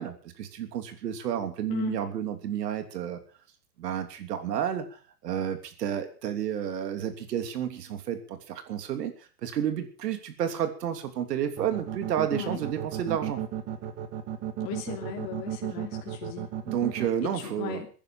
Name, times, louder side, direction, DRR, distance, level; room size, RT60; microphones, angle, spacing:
voice 1, 0.0-3.2 3.8-13.4 16.7-17.8, right 9 dB, 80° right, 8 dB, 3.1 m, -31 dB
sound 1, 11.6-17.1, right 11 dB, 30° right, 2.2 m, -33 dB
voice 2, 14.6-16.5 17.2-17.9, left 9 dB, 45° left, 1 dB, 3.1 m, -37 dB
16.0 x 10.5 x 6.8 m, 0.39 s
supercardioid pair, 145°, 48 cm